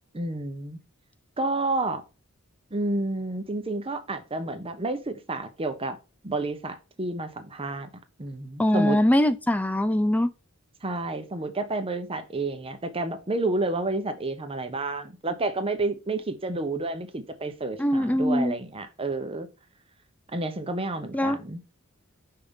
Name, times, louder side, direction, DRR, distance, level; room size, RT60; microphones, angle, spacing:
voice 1, 0.1-0.8 1.4-2.0 2.7-6.0 6.2-7.9 8.2-9.0 10.8-19.5 20.3-21.6, right 2 dB, 25° right, 0.8 m, -30 dB
voice 2, 8.6-10.3 17.8-18.5 21.1-21.4, left 1 dB, 5° left, 0.4 m, -22 dB
5.6 x 3.6 x 5.3 m
head